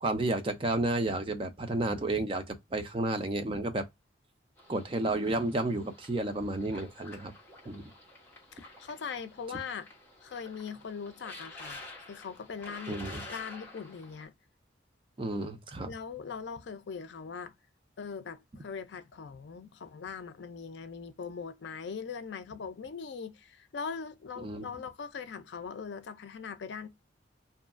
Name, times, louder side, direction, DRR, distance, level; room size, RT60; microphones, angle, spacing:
voice 1, 0.0-3.9 4.7-7.3 7.7-7.8 12.9-13.2 15.2-15.9 24.4-24.7, right 2 dB, 30° right, 0.4 m, -31 dB
sound 1, 4.6-14.2, left 2 dB, 10° left, 0.8 m, -50 dB
voice 2, 8.5-9.9 10.2-11.8 12.1-13.0 13.3-14.3 15.9-17.5 18.0-26.9, left 6 dB, 70° left, 0.4 m, -41 dB
2.7 x 2.3 x 2.3 m
head